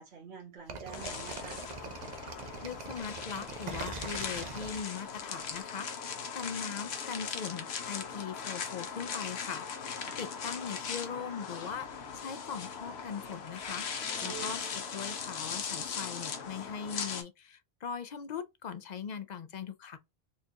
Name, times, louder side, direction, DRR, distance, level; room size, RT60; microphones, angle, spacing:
voice 1, 0.0-1.6 10.0-10.2 14.2-14.5, right 6 dB, 75° right, 1.4 m, -48 dB
sound 1, 0.7-5.5, right 4 dB, 50° right, 0.7 m, -42 dB
sound 2, 0.9-17.2, left 6 dB, 80° left, 1.0 m, -39 dB
voice 2, 2.6-13.9 14.2-20.0, left 7 dB, 55° left, 0.5 m, -40 dB
sound 3, 14.0-15.6, right 6 dB, 5° left, 1.0 m, -48 dB
4.4 x 2.4 x 2.8 m
omnidirectional pair, 1.1 m